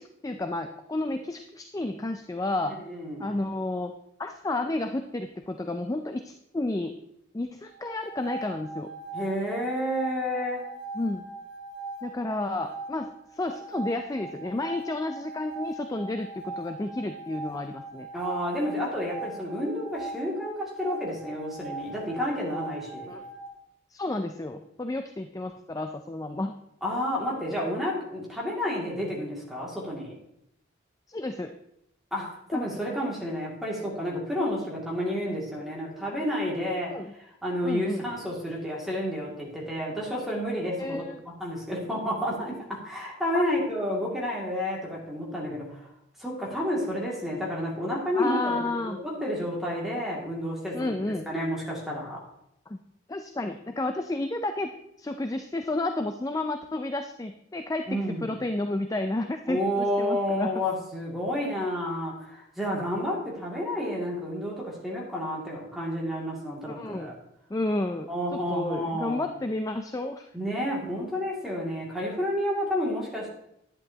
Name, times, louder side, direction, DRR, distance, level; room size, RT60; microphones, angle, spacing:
voice 1, 0.0-2.8 3.2-3.9 4.2-6.9 7.3-8.9 10.9-11.3 12.0-18.1 23.1-23.2 23.9-26.5 31.1-31.5 32.5-32.6 36.9-37.1 37.6-38.0 40.8-41.2 43.3-43.4 48.1-49.0 50.7-51.3 52.7-52.8 53.1-54.7 55.0-60.6 66.6-67.1 67.5-70.3, left 2 dB, 15° left, 7 dB, 0.3 m, -31 dB
voice 2, 2.7-3.3 9.1-10.7 18.1-23.1 26.8-30.1 32.1-37.0 37.4-45.9 46.2-50.8 51.3-52.2 57.9-58.3 59.5-67.1 68.1-69.3 70.3-73.3, equal, ahead, -5 dB, 2.3 m, -30 dB
sound 1, 7.7-23.5, right 3 dB, 80° right, 3.0 m, -40 dB
11.0 x 9.9 x 2.9 m, 0.79 s
head